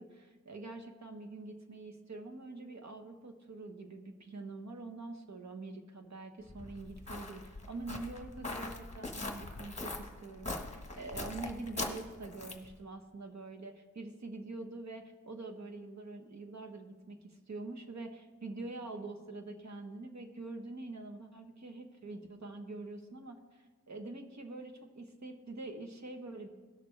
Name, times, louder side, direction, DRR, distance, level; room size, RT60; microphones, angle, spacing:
voice 1, 0.0-26.5, right 2 dB, 50° right, 5 dB, 1.1 m, -45 dB
Walk footsteps, 6.5-12.8, left 2 dB, 20° left, 1.2 m, -42 dB
17.5 x 6.7 x 3.3 m, 1.3 s
wide cardioid pair, 80°, 35 cm